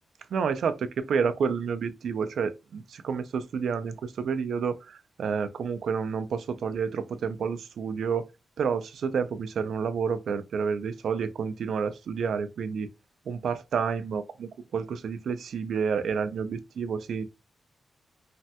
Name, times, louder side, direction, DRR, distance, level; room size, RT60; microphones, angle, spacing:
voice 1, 0.3-8.3 8.6-12.9 13.3-17.2, right 6 dB, 75° right, 0.3 m, -29 dB
3.2 x 2.2 x 2.7 m
wide cardioid pair, 180°, 0 cm